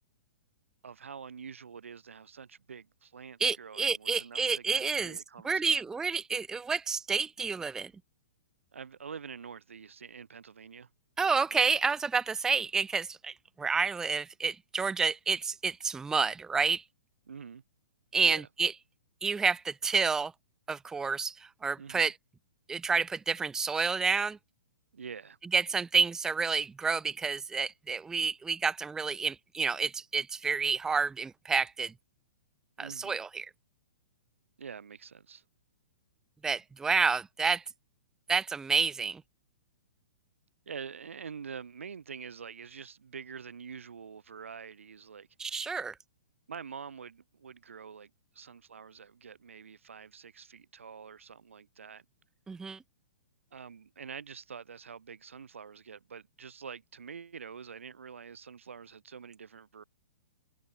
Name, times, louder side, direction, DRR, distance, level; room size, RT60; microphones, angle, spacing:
voice 1, 0.8-5.8 8.7-10.9 17.3-17.6 18.2-18.5 21.8-22.1 24.9-25.4 32.8-33.2 34.6-35.4 40.7-45.7 46.5-52.0 53.5-59.8, right 6 dB, 85° right, 2.9 m, -46 dB
voice 2, 3.4-5.2 5.4-7.9 11.2-16.8 18.1-18.7 19.2-20.3 20.7-22.1 22.7-24.4 25.5-31.9 32.8-33.5 36.4-37.6 38.3-39.2 45.4-45.9 52.5-52.8, right 5 dB, 10° right, 0.5 m, -29 dB
hypercardioid pair, 130°, 7 cm